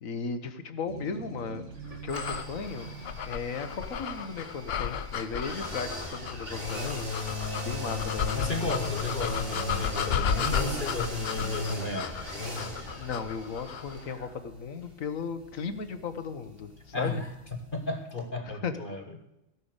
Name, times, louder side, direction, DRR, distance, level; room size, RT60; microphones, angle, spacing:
voice 1, 0.0-1.6 2.0-2.9 3.2-7.0 7.5-8.4 11.5-11.8 13.0-17.2 18.4-18.7, left 5 dB, 85° left, 9 dB, 1.5 m, -36 dB
sound 1, 0.8-5.2, right 4 dB, 65° right, 2.7 m, -45 dB
sound 2, 2.1-14.0, left 7 dB, 55° left, 0.9 m, -34 dB
sound 3, 2.1-17.9 18.2-18.3, left 2 dB, 45° right, 3.3 m, -37 dB
voice 2, 8.3-12.1 16.9-17.3 17.7-19.2, left 2 dB, 40° left, 5 dB, 1.7 m, -34 dB
17.0 x 5.8 x 8.0 m, 0.87 s
omnidirectional pair, 1.4 m